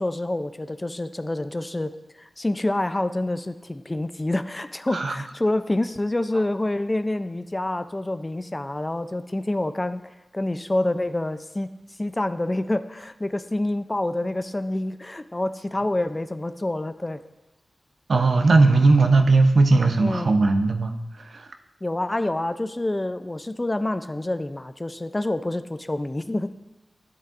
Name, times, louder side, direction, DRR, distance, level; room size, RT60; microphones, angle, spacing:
voice 1, 0.0-11.7 12.0-17.2 20.0-20.3 21.8-26.6, left 1 dB, 30° left, 11 dB, 0.5 m, -27 dB
voice 2, 18.1-21.5, right 3 dB, 75° right, 6 dB, 0.6 m, -18 dB
12.5 x 7.4 x 2.5 m, 1.0 s
cardioid pair, 45°, 0 cm